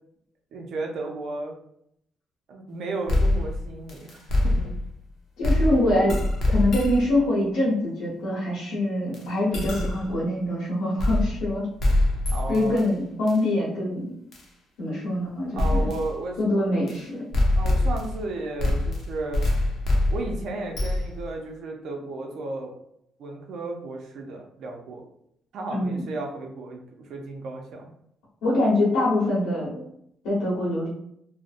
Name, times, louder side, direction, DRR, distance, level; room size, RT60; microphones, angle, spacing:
voice 1, 0.5-1.5 2.5-4.7 12.3-12.8 15.5-16.6 17.6-19.5 20.1-22.7 23.2-25.0 25.5-27.9, right 2 dB, 75° right, 1 dB, 0.4 m, -34 dB
sound 1, 3.1-5.0 5.4-7.2 9.1-9.2 9.5-10.1 11.0-11.5 11.8-12.8 13.3-13.4 14.3-14.4 15.6-16.1 16.9-17.0 17.3-18.3 18.6-21.3, left 1 dB, 60° left, 0.7 m, -24 dB
voice 2, 5.4-6.2 6.5-11.7 12.5-14.1 14.8-15.9 16.4-17.3 25.7-26.1 28.4-29.8 30.2-30.9, left 1 dB, 90° left, -9 dB, 1.0 m, -24 dB
2.6 x 2.0 x 2.4 m, 0.73 s
cardioid pair, 90°, 0 cm